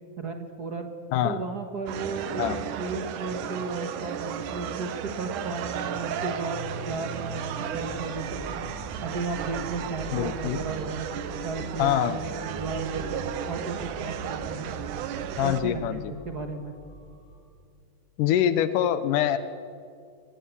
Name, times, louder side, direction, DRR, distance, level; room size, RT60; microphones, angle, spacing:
voice 1, 0.2-0.9 1.2-2.4 2.7-8.6 9.0-14.7 15.4-16.7, right 3 dB, 45° right, 5 dB, 1.5 m, -34 dB
voice 2, 1.1-1.4 2.4-2.6 10.1-10.6 11.8-12.2 15.4-16.1 18.2-19.4, left 10 dB, 85° left, 13 dB, 2.3 m, -24 dB
sound 1, 1.9-15.6, right 8 dB, 75° right, 2.5 m, -34 dB
sound 2, 5.9-17.4, equal, 65° left, 8.6 m, -44 dB
24.0 x 18.5 x 8.5 m, 2.4 s
omnidirectional pair, 3.6 m